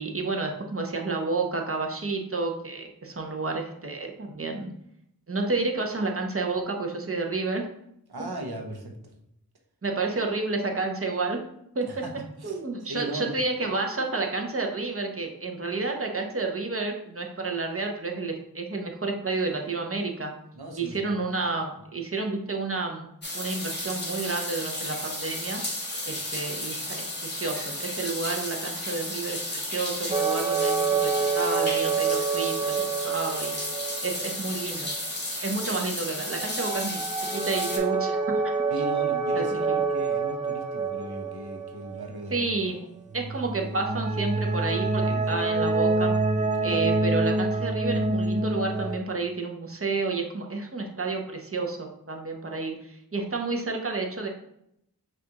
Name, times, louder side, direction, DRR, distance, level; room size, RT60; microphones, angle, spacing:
voice 1, 0.0-4.7 5.3-7.7 9.8-11.4 11.7-11.9 12.4-20.3 20.8-23.1 23.3-25.6 26.1-33.5 34.0-34.9 35.4-38.4 39.3-39.4 42.3-42.8 43.1-46.1 46.6-54.3, right 3 dB, 35° right, 2 dB, 0.8 m, -30 dB
voice 2, 8.1-9.0 11.9-12.1 12.4-13.4 20.6-21.2 38.7-42.5 45.1-45.4 46.6-46.9, right 1 dB, 90° right, 2 dB, 0.8 m, -37 dB
sound 1, 23.2-37.8, left 1 dB, 30° left, 1.1 m, -33 dB
sound 2, 30.1-34.3 34.6-34.7 36.3-42.0 43.1-49.0, right 3 dB, 20° right, 0.4 m, -27 dB
5.9 x 2.5 x 2.9 m, 0.77 s
wide cardioid pair, 40°, 37 cm